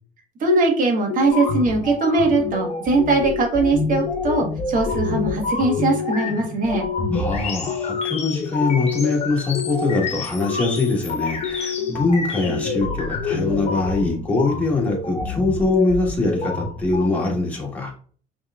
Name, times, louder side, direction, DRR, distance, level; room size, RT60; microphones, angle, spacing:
voice 1, 0.4-6.9, right 3 dB, 55° right, 2 dB, 1.4 m, -20 dB
sound 1, 1.1-1.6 2.0-2.5 3.0-3.5 3.9-4.4 4.9-5.4 5.8-6.3 6.7-7.2 7.7-8.2 8.6-9.1 9.5-10.0 10.5-11.0 11.4-11.9 12.4-12.9 13.3-13.8, left 9 dB, 75° left, 1.0 m, -28 dB
sound 2, 1.2-17.1, left 3 dB, 40° left, 1.1 m, -28 dB
voice 2, 7.1-17.9, left 3 dB, 10° left, -2 dB, 1.4 m, -23 dB
5.5 x 3.2 x 2.4 m, 0.43 s
cardioid pair, 110°, 17 cm